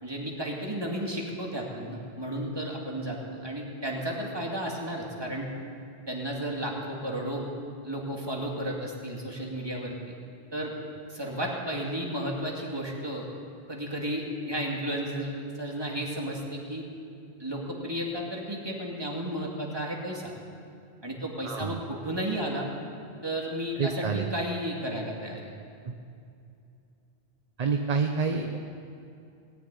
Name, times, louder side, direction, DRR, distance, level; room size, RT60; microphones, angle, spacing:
voice 1, 0.0-5.5 6.1-7.4 7.8-10.2 10.5-10.7 11.1-13.3 13.7-16.8 17.4-20.3 21.0-22.7 23.2-25.5, equal, 20° right, -1 dB, 2.3 m, -33 dB
voice 2, 21.4-21.8 23.8-24.3 25.8-25.9 27.6-28.6, right 5 dB, 40° right, 4 dB, 0.8 m, -28 dB
18.5 x 7.1 x 9.7 m, 2.6 s
omnidirectional pair, 1.1 m